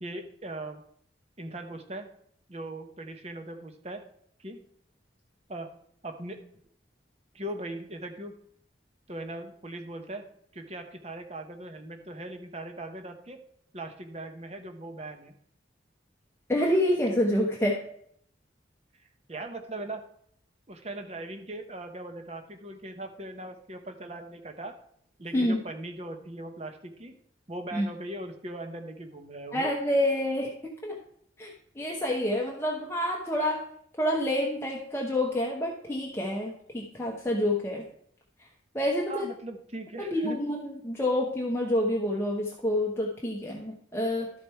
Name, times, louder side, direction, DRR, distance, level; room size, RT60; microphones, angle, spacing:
voice 1, 0.0-0.8 1.4-2.1 2.5-4.0 4.4-4.6 5.5-5.7 6.0-6.4 7.3-8.4 9.1-10.2 10.5-13.4 13.7-15.3 19.3-20.0 20.7-24.7 25.2-27.1 27.5-29.7 39.1-40.4, right 1 dB, 35° right, 6 dB, 1.0 m, -39 dB
voice 2, 16.5-17.8 25.3-25.6 27.7-27.8 29.5-31.0 31.4-33.6 34.0-37.8 38.7-39.3 40.0-44.3, left 1 dB, 15° left, -2 dB, 1.0 m, -28 dB
12.5 x 5.2 x 4.5 m, 0.66 s
head